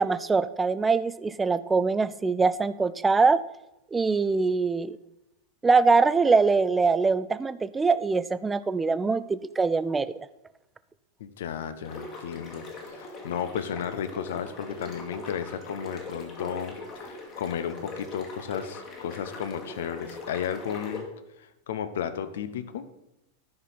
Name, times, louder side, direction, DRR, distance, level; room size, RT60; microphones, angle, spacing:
voice 1, 0.0-3.4 3.9-5.0 5.6-10.1, right 4 dB, 15° right, 15 dB, 0.4 m, -23 dB
voice 2, 11.2-21.1 21.4-22.8, left 8 dB, 60° left, 11 dB, 0.7 m, -34 dB
sound 1, 11.8-21.0, left 2 dB, 35° left, 1.9 m, -41 dB
11.0 x 5.8 x 4.1 m, 0.90 s
figure-of-eight pair, 90°, 0 cm